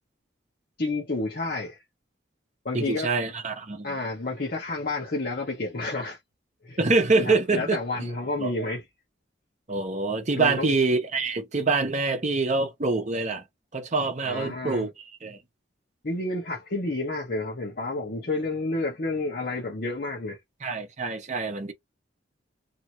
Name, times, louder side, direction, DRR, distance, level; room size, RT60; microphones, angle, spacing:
voice 1, 0.8-1.8 2.6-3.1 3.8-6.2 6.6-6.8 7.3-8.8 10.3-10.7 14.3-14.9 16.0-20.4, left 2 dB, 50° left, 1.0 m, -30 dB
voice 2, 2.7-3.9 6.8-7.8 8.4-8.7 9.7-13.4 13.7-15.4 20.6-21.7, right 3 dB, 40° right, 0.8 m, -25 dB
2.8 x 2.7 x 2.9 m
head